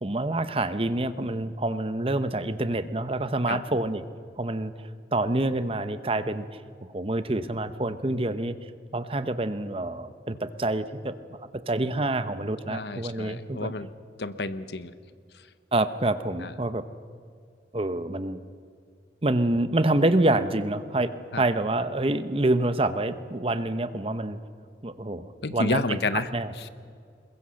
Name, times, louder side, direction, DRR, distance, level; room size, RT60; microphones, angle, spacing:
voice 1, 0.0-4.0 4.4-6.5 6.9-8.5 8.9-11.1 11.7-13.7 15.7-16.9 17.7-18.4 19.2-24.4 24.8-25.8 26.3-26.5, right 2 dB, 30° right, 12 dB, 0.9 m, -27 dB
voice 2, 12.7-13.9 14.2-14.9 15.3-15.5 16.4-16.5 21.3-21.4 25.4-26.3 26.6-26.7, left 3 dB, 75° left, 13 dB, 1.0 m, -30 dB
22.0 x 21.5 x 6.5 m, 2.3 s
head